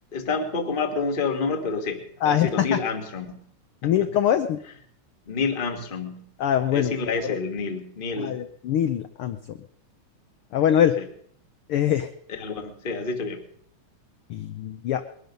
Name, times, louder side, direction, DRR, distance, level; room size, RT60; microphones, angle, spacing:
voice 1, 0.1-3.4 3.8-4.1 5.3-6.2 6.7-8.4 11.0-11.1 12.3-13.4, left 4 dB, 30° left, 5 dB, 1.0 m, -28 dB
voice 2, 2.2-2.8 3.8-4.6 6.4-6.9 7.3-7.4 8.2-9.6 10.5-11.0 11.7-12.1 14.3-15.0, left 10 dB, 80° left, 8 dB, 1.2 m, -23 dB
21.0 x 12.0 x 5.3 m, 0.63 s
omnidirectional pair, 3.5 m